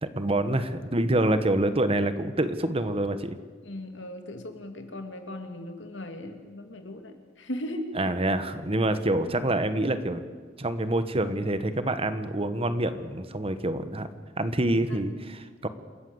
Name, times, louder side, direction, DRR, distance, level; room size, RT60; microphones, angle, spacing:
voice 1, 0.0-3.4 8.0-10.2 10.6-14.1 14.4-15.7, right 1 dB, 30° right, 11 dB, 1.2 m, -26 dB
voice 2, 3.6-8.1 14.9-15.0, left 1 dB, 80° left, 5 dB, 2.5 m, -38 dB
27.5 x 14.0 x 7.9 m, 1.5 s
head